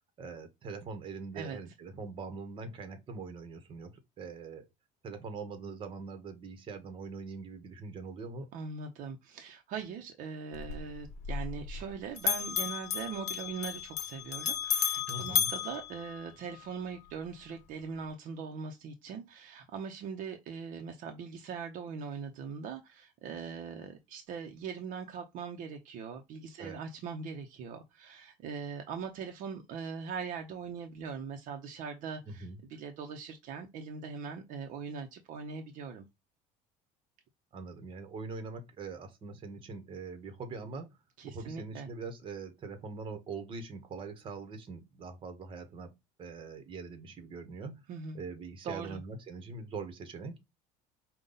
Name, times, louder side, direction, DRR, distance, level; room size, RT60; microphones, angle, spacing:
voice 1, 0.2-4.7 5.0-8.5 15.1-15.5 26.6-26.8 32.3-32.6 37.5-40.9 41.2-45.9 46.2-47.7 48.1-50.4, right 4 dB, 35° right, 1.1 m, -42 dB
voice 2, 8.5-36.0 41.2-41.9 47.9-48.2 48.6-49.0, right 6 dB, 60° right, 0.7 m, -41 dB
Bell, 10.5-11.9 12.2-16.7, left 8 dB, 50° left, 0.9 m, -33 dB
5.2 x 2.3 x 3.9 m
cardioid pair, 145°, 15 cm